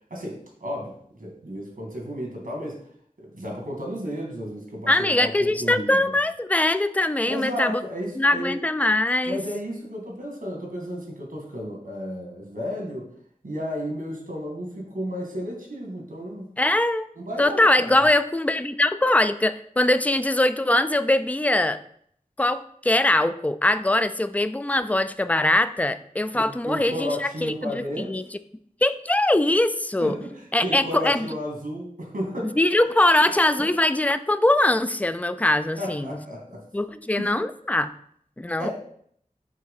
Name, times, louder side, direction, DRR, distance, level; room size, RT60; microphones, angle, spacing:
voice 1, 0.1-0.9 1.2-2.8 3.2-6.1 7.2-8.6 9.3-13.1 13.4-16.5 17.2-18.0 26.3-28.2 30.0-32.5 35.8-36.6 36.9-37.3 38.6-38.7, equal, 80° right, 0 dB, 2.3 m, -33 dB
voice 2, 4.9-7.8 8.2-9.4 16.6-17.1 17.4-21.8 22.4-28.2 28.8-30.2 30.5-31.3 32.4-36.2 36.7-37.9 38.4-38.7, left 1 dB, 10° left, 12 dB, 0.4 m, -22 dB
7.5 x 3.1 x 5.6 m, 0.64 s
wide cardioid pair, 60°, 14 cm